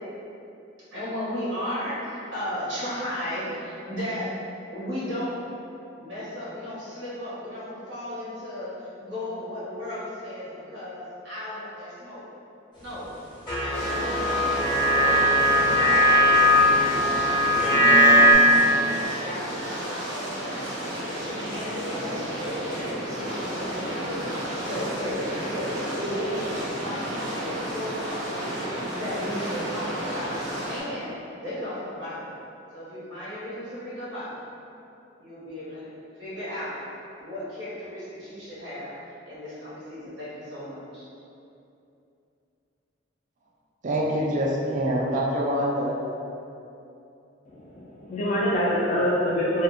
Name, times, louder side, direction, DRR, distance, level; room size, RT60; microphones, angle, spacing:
voice 1, 0.9-4.3 4.7-5.4 6.0-8.7 9.0-12.2 12.8-13.1 13.6-14.4 14.9-15.2 15.5-17.3 18.5-20.6 21.0-30.4 30.6-32.2 32.7-34.4 35.2-35.9 36.2-36.8 37.2-38.9 39.3-41.0, equal, 85° right, -10 dB, 1.1 m, -35 dB
sound 1, 13.5-18.3, equal, 25° left, 0.7 m, -19 dB
sound 2, 13.7-30.8, equal, 70° right, 0.8 m, -32 dB
voice 2, 43.8-46.0, equal, 40° right, -3 dB, 0.4 m, -25 dB
voice 3, 47.5-49.6, equal, 40° left, -6 dB, 0.3 m, -25 dB
2.6 x 2.4 x 2.5 m, 2.7 s
head